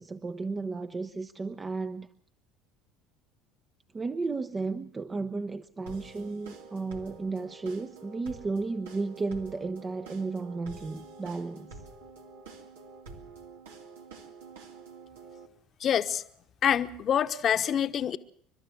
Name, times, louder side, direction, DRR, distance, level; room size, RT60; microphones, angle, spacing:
voice 1, 0.0-2.1 3.9-11.8, right 3 dB, 25° right, 0.8 m, -34 dB
sound 1, 5.9-15.5, right 4 dB, 85° right, 2.2 m, -48 dB
voice 2, 15.8-16.2 16.6-18.2, left 9 dB, 45° left, 1.1 m, -26 dB
29.0 x 12.5 x 7.5 m
hypercardioid pair, 75°, 0 cm